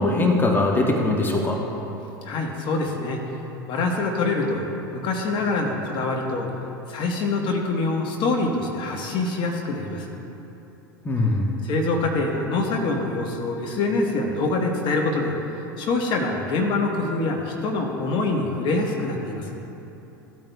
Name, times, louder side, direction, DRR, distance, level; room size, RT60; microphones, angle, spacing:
voice 1, 0.0-1.6 11.0-11.5, left 2 dB, 20° left, 0 dB, 1.2 m, -21 dB
voice 2, 2.2-3.2 3.7-4.6 4.9-6.5 6.9-10.2 11.6-15.3 15.8-19.5, left 3 dB, 50° left, 1 dB, 1.3 m, -25 dB
15.5 x 8.9 x 2.3 m, 3.0 s
hypercardioid pair, 80°, 11 cm